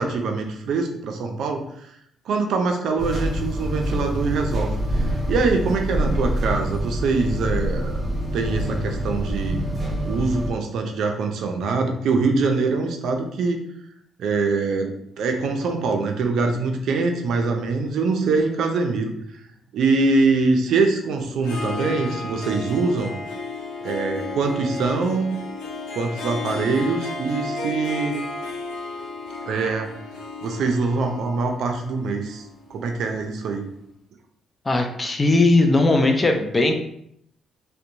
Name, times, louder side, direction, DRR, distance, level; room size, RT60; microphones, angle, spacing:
voice 1, 0.0-1.9 2.3-4.7 5.3-8.0 8.3-9.6 10.0-13.6 14.2-19.1 19.7-23.1 23.8-25.3 25.9-28.2 29.5-30.0 30.4-32.4 32.7-33.6, right 4 dB, 75° right, 4 dB, 0.4 m, -23 dB
sound 1, 3.0-10.5, equal, 30° right, 0.9 m, -26 dB
Harp, 21.4-33.2, left 2 dB, 80° left, 0.6 m, -33 dB
voice 2, 34.7-36.7, left 2 dB, 25° left, 4 dB, 0.4 m, -18 dB
2.7 x 2.1 x 2.5 m, 0.72 s
cardioid pair, 90°, 0 cm